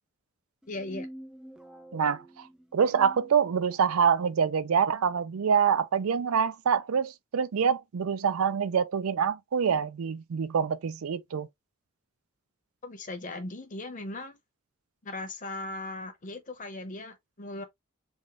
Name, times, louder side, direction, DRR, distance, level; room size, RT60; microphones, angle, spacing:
sound 1, 0.6-4.0, equal, 5° right, 0.5 m, -47 dB
voice 1, 0.7-1.1 12.8-14.4 15.0-17.6, left 2 dB, 40° left, 0.8 m, -38 dB
voice 2, 1.9-2.2 2.7-11.5, right 7 dB, 90° right, 0.4 m, -26 dB
3.6 x 2.4 x 3.2 m
head